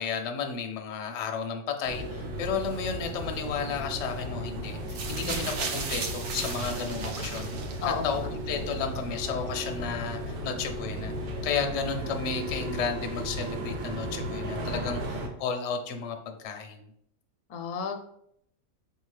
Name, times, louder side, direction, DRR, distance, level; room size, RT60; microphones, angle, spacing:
voice 1, 0.0-7.5 8.0-16.8, left 6 dB, 60° left, 4 dB, 0.8 m, -33 dB
sound 1, 1.8-15.3, equal, 90° right, 1.3 m, -35 dB
sound 2, 4.9-8.1 9.0-9.1, right 4 dB, 65° right, 0.8 m, -35 dB
voice 2, 5.2-5.5 7.8-8.3 17.5-18.0, left 6 dB, 90° left, 6 dB, 1.1 m, -33 dB
5.1 x 2.7 x 3.2 m, 0.72 s
omnidirectional pair, 1.6 m